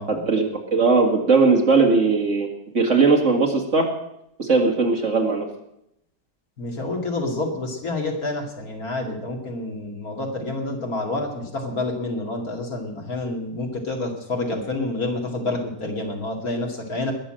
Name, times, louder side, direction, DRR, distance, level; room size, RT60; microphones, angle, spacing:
voice 1, 0.1-2.5 2.7-3.9 4.4-5.5, right 4 dB, 45° right, 0 dB, 2.3 m, -19 dB
voice 2, 6.6-17.1, left 2 dB, 55° left, 1 dB, 2.9 m, -28 dB
20.5 x 6.9 x 7.7 m, 0.80 s
omnidirectional pair, 1.8 m